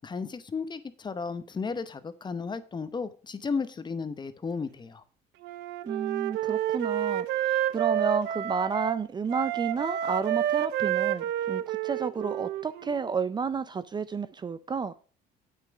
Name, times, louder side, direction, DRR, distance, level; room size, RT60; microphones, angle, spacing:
voice 1, 0.0-5.0, left 5 dB, 25° left, 0.8 m, -34 dB
Wind instrument woodwind instrument, 5.4-9.0 9.3-13.1, right 11 dB, 90° right, 0.6 m, -29 dB
voice 2, 5.9-14.9, right 5 dB, 25° right, 0.4 m, -31 dB
8.3 x 6.3 x 4.8 m
cardioid pair, 110°, 17 cm